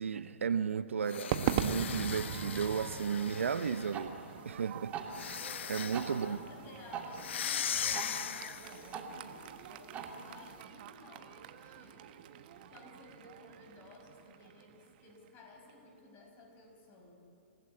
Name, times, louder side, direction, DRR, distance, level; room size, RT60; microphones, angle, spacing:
voice 1, 0.0-4.2 4.4-5.4 5.7-6.4, right 7 dB, 80° right, 14 dB, 0.7 m, -34 dB
sound 1, 1.0-4.0 5.1-6.3 7.2-8.9, left 9 dB, 65° left, 0.8 m, -39 dB
Crowd / Fireworks, 1.3-15.7, right 9 dB, 45° right, 1.3 m, -42 dB
sound 2, 3.3-10.6, right 5 dB, 20° right, 3.1 m, -46 dB
voice 2, 5.9-12.1 12.7-17.1, left 3 dB, 30° left, 2 dB, 6.0 m, -56 dB
28.0 x 16.0 x 8.8 m, 2.8 s
hypercardioid pair, 130°, 7 cm